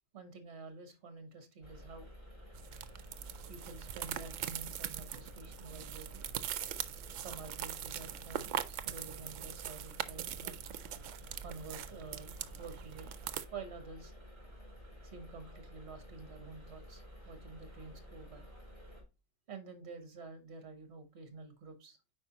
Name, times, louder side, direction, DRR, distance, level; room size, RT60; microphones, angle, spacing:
voice 1, 0.1-2.1 3.5-6.2 7.2-10.5 11.4-13.1 13.5-14.1 15.0-18.5 19.5-22.0, right 4 dB, 55° right, 8 dB, 1.5 m, -49 dB
sound 1, 1.6-19.0, equal, 20° right, 2.6 m, -52 dB
sound 2, 2.6-13.5, right 10 dB, 75° right, 0.9 m, -42 dB
8.5 x 4.8 x 2.9 m, 0.28 s
omnidirectional pair, 1.3 m